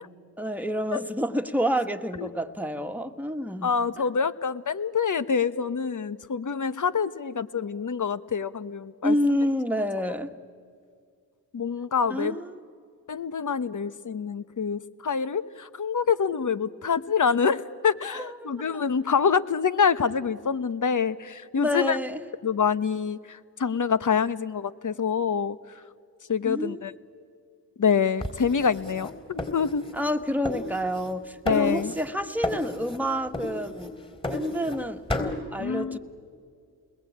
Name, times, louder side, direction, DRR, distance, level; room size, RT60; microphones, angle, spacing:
voice 1, 0.4-3.7 9.0-10.3 12.1-12.6 18.2-18.9 21.6-22.2 26.5-26.8 29.9-33.9 34.3-36.0, equal, 5° right, 6 dB, 1.9 m, -28 dB
voice 2, 3.6-9.1 11.5-12.4 13.1-22.0 22.4-25.6 26.3-26.9 27.8-29.8 31.4-31.9 35.6-36.0, left 6 dB, 45° left, 14 dB, 1.3 m, -26 dB
sound 1, 28.2-30.2 30.4-31.2 31.5-32.1 32.4-33.0 33.3-34.8 35.1-35.4, left 2 dB, 10° left, 3.8 m, -33 dB
29.0 x 21.0 x 8.8 m, 2.2 s
supercardioid pair, 45°, 41 cm